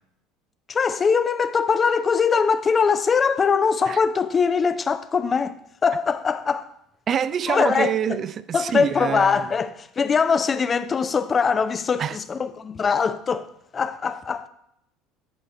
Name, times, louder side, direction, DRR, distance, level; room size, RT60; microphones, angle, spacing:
voice 1, 0.7-6.7 7.5-8.2 8.5-13.5 13.7-14.5, left 5 dB, 30° left, 0.5 m, -22 dB
voice 2, 7.1-9.5 12.0-12.2, right 9 dB, 40° right, 0.3 m, -26 dB
10.5 x 4.7 x 4.2 m
figure-of-eight pair, 65°, 0 cm